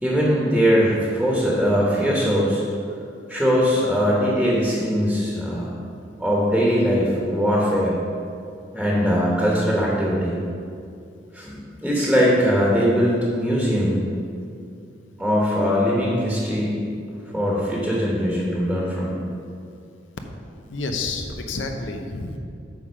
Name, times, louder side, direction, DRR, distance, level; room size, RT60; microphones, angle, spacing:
voice 1, 0.0-2.6 3.3-5.8 6.2-8.0 8.7-10.4 11.3-14.0 15.2-16.8 17.3-19.2, equal, ahead, -5 dB, 1.1 m, -21 dB
voice 2, 20.7-22.4, left 3 dB, 80° left, 4 dB, 0.8 m, -29 dB
8.9 x 3.8 x 6.3 m, 2.4 s
head